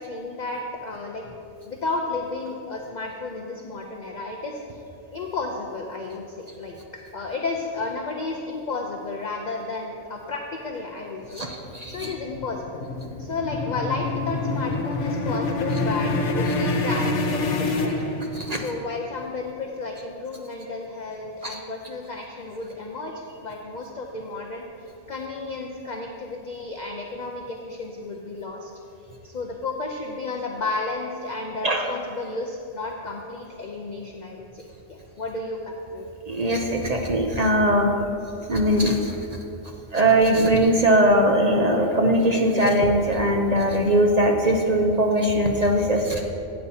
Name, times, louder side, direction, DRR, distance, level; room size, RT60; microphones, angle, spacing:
voice 1, 0.0-1.4 1.6-4.8 5.1-6.8 7.1-11.5 11.9-12.8 13.2-18.0 18.6-23.1 23.4-24.7 25.1-28.7 29.2-34.6 34.9-36.1, left 3 dB, 45° left, 1 dB, 0.6 m, -32 dB
voice 2, 11.3-12.1 18.3-18.6 21.4-21.6 31.6-31.9 36.3-37.9 38.5-39.2 39.9-46.2, right 1 dB, 40° right, 1 dB, 0.7 m, -20 dB
sound 1, 11.4-18.7, left 2 dB, 75° left, 1.1 m, -26 dB
13.0 x 8.6 x 2.8 m, 2.7 s
omnidirectional pair, 1.2 m